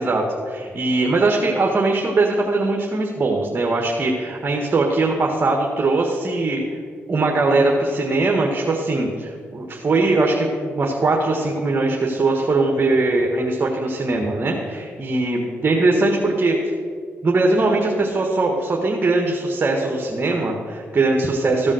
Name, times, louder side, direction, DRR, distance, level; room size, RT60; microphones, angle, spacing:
voice 1, 0.0-6.6 7.1-16.7 17.2-21.7, right 2 dB, 40° right, 0 dB, 1.5 m, -20 dB
14.0 x 5.3 x 6.3 m, 2.1 s
supercardioid pair, 60°, 5 cm